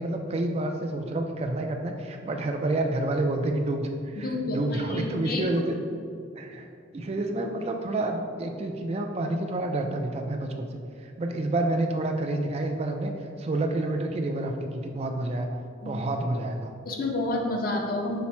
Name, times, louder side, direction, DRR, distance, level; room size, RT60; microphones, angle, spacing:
voice 1, 0.0-5.8 6.4-10.7 11.0-13.1 13.4-15.5 15.8-16.7, right 2 dB, 30° right, 4 dB, 0.3 m, -29 dB
voice 2, 4.2-5.5 15.8-15.9 16.8-18.3, left 2 dB, 45° left, 1 dB, 0.5 m, -29 dB
5.7 x 2.1 x 4.2 m, 2.4 s
head